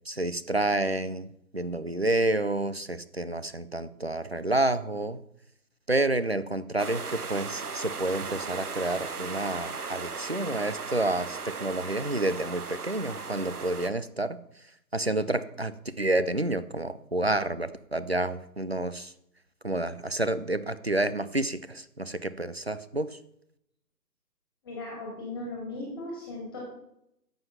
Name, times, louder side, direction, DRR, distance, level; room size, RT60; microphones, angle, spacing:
voice 1, 0.1-5.2 5.9-14.6 14.9-19.1 19.6-23.2, right 2 dB, 45° right, 14 dB, 0.4 m, -29 dB
sound 1, 6.8-13.9, right 4 dB, 65° right, 1.3 m, -37 dB
voice 2, 24.6-26.6, left 2 dB, 15° left, -2 dB, 2.3 m, -37 dB
10.5 x 7.9 x 5.7 m, 0.79 s
figure-of-eight pair, 170°, 48 cm